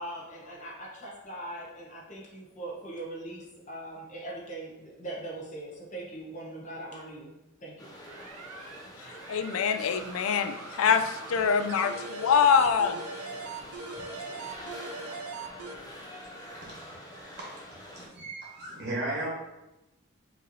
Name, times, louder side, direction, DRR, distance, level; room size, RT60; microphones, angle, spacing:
voice 1, 0.0-7.9, right 1 dB, 35° left, -4 dB, 1.0 m, -41 dB
sound 1, 7.8-18.1, equal, 15° left, 0.6 m, -45 dB
sound 2, 8.1-15.8, right 4 dB, 85° right, 0.4 m, -42 dB
voice 2, 9.3-13.0, left 6 dB, 70° left, 9 dB, 0.3 m, -24 dB
voice 3, 16.6-17.5 17.9-19.3, right 1 dB, 50° right, -5 dB, 1.3 m, -36 dB
5.1 x 3.0 x 2.7 m, 0.97 s
head